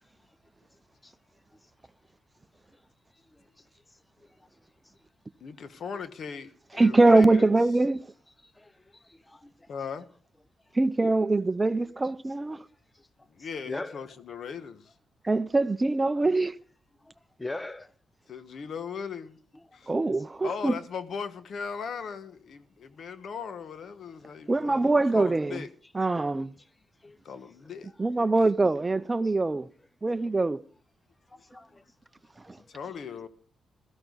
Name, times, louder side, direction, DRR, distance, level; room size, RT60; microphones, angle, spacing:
voice 1, 3.3-3.6 4.2-4.5 8.4-9.7 12.5-12.6 12.9-14.1 16.1-16.2 17.0-17.1 17.4-17.9 19.5-20.0 24.2-24.5 25.3-25.4 26.2-26.3 26.6-26.7 27.0-27.2 29.2-29.6 31.3-31.8 32.4-32.6, left 2 dB, 20° left, 0.8 m, -43 dB
voice 2, 5.4-7.5 9.7-10.1 13.3-14.9 18.3-19.4 19.7-19.9 20.4-25.7 27.2-27.9 32.7-33.3, left 6 dB, 65° left, 1.3 m, -38 dB
voice 3, 6.8-8.0 10.8-12.6 15.2-16.5 19.9-20.8 24.5-25.6 25.9-26.5 28.0-29.7 30.0-30.6, right 2 dB, 25° right, 0.6 m, -23 dB
16.5 x 14.0 x 4.0 m
cardioid pair, 75°, 0 cm